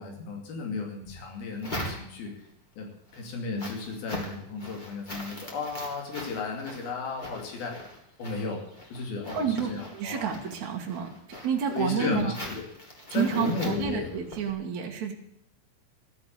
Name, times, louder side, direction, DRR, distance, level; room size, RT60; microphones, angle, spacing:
voice 1, 0.0-2.3 2.8-2.9 3.1-7.7 8.2-8.6 8.9-10.2 11.7-12.6 13.1-14.1, left 4 dB, 90° left, 1 dB, 4.5 m, -34 dB
sound 1, 1.0-2.5 2.9-14.5, equal, 15° left, 2.9 m, -42 dB
voice 2, 9.3-11.1 11.4-12.3 13.1-15.1, right 8 dB, 55° right, 0 dB, 2.9 m, -29 dB
14.5 x 8.1 x 9.5 m, 0.74 s
omnidirectional pair, 4.2 m